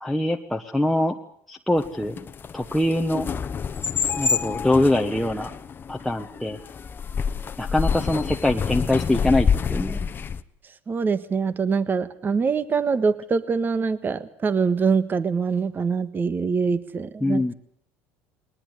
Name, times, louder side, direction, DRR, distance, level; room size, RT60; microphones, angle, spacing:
voice 1, 0.0-1.2 1.5-2.2 2.5-3.3 4.2-5.5 5.9-6.6 7.6-10.0 17.2-17.5, left 1 dB, ahead, 2 dB, 1.3 m, -23 dB
sound 1, 1.8-10.4, left 6 dB, 30° left, 1.0 m, -27 dB
voice 2, 10.9-17.5, right 5 dB, 30° right, 14 dB, 1.5 m, -24 dB
20.5 x 19.0 x 8.2 m, 0.70 s
supercardioid pair, 95°, 7 cm